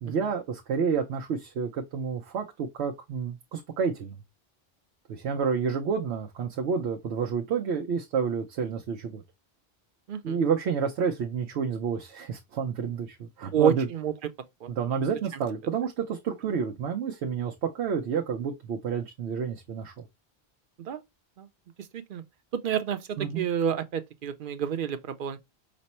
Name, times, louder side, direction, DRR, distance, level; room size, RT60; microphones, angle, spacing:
voice 1, 0.0-4.2 5.1-9.2 10.2-13.9 14.7-20.1 23.2-23.4, right 6 dB, 85° right, 0.9 m, -29 dB
voice 2, 10.1-10.4 13.5-14.1 14.6-14.7 20.8-21.0 21.4-21.5 21.9-22.2 22.5-25.4, right 8 dB, 60° right, 0.7 m, -29 dB
5.2 x 2.0 x 4.1 m
omnidirectional pair, 1.1 m